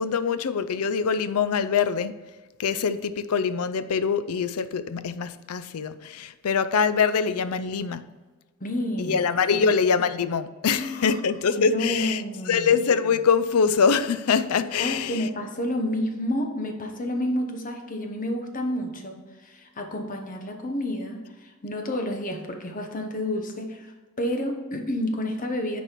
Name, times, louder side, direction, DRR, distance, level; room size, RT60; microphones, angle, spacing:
voice 1, 0.0-2.2 2.6-8.1 9.0-15.3, left 6 dB, 75° left, 13 dB, 0.5 m, -24 dB
voice 2, 8.6-9.7 10.7-11.2 11.6-12.7 14.8-19.2 19.4-23.9 24.2-25.8, left 1 dB, 40° left, 4 dB, 1.0 m, -30 dB
9.9 x 4.3 x 4.5 m, 1.3 s
head